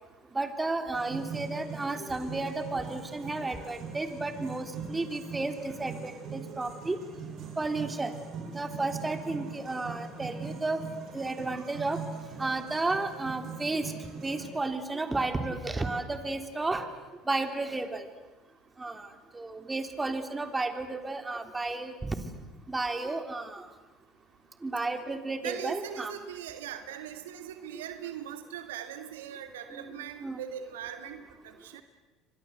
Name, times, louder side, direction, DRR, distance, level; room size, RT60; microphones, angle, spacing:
voice 1, 0.3-7.0 7.6-8.1 8.5-10.8 11.1-12.0 12.4-13.9 14.2-16.9 17.3-18.1 18.8-19.1 19.3-22.1 22.7-23.7 24.6-26.1 27.7-27.8 29.7-30.4, right 3 dB, 15° right, 7 dB, 3.4 m, -32 dB
sound 1, 0.9-14.5, right 5 dB, 55° right, 7.8 m, -41 dB
voice 2, 25.4-31.8, right 9 dB, 80° right, 8 dB, 1.9 m, -40 dB
29.5 x 24.5 x 8.0 m, 1.2 s
hypercardioid pair, 70°, 0 cm